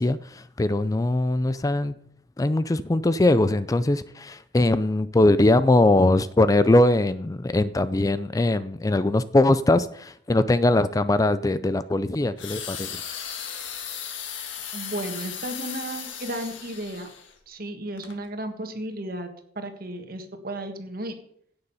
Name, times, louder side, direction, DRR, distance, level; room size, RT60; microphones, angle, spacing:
voice 1, 0.0-1.9 2.4-13.0, left 2 dB, 20° left, 14 dB, 0.4 m, -21 dB
sound 1, 12.4-17.3 18.0-18.2, left 8 dB, 85° left, 1.8 m, -36 dB
voice 2, 14.7-17.1 17.5-19.3 19.5-21.2, right 1 dB, 50° right, 6 dB, 1.7 m, -34 dB
16.5 x 6.7 x 5.6 m, 0.67 s
head